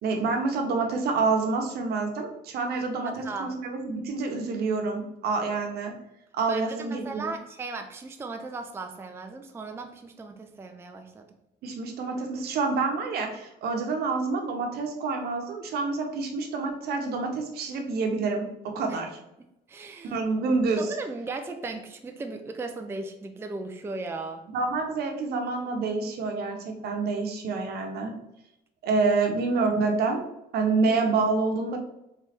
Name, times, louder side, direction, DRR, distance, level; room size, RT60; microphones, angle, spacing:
voice 1, 0.0-5.9 6.3-7.2 11.6-19.1 20.0-20.9 24.5-28.1 28.8-30.2 30.5-31.8, right 4 dB, 70° right, 3 dB, 0.9 m, -27 dB
voice 2, 3.0-3.5 6.5-11.3 18.9-19.0 19.7-20.2 20.8-24.4, right 3 dB, 15° right, 5 dB, 0.4 m, -37 dB
3.4 x 3.1 x 4.3 m, 0.87 s
cardioid pair, 110°, 17 cm